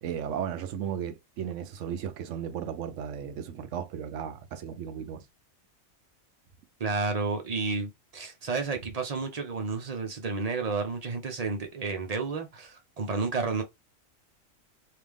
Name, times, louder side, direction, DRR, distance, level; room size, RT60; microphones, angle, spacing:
voice 1, 0.0-5.2, right 8 dB, 65° right, 0.9 m, -35 dB
voice 2, 6.8-13.6, right 4 dB, 35° right, 0.7 m, -31 dB
3.2 x 2.8 x 3.5 m
omnidirectional pair, 1.4 m